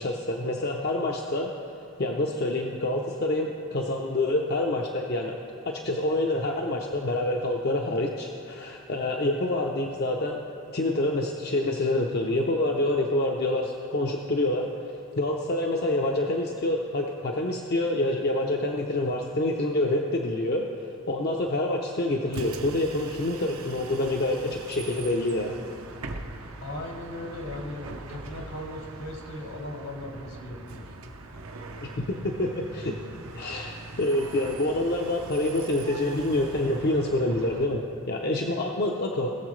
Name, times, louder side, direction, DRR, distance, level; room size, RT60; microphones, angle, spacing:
voice 1, 0.0-1.5 2.0-5.4 5.6-10.4 10.7-14.7 15.2-20.7 21.1-25.5 31.8-32.9 33.3-33.7 34.0-39.3, left 1 dB, 45° left, 0 dB, 0.6 m, -27 dB
Bus, 22.2-37.7, right 2 dB, 80° right, 0.8 m, -41 dB
voice 2, 26.6-30.9, left 1 dB, 75° left, 1 dB, 1.7 m, -38 dB
19.0 x 7.0 x 3.2 m, 2.7 s
head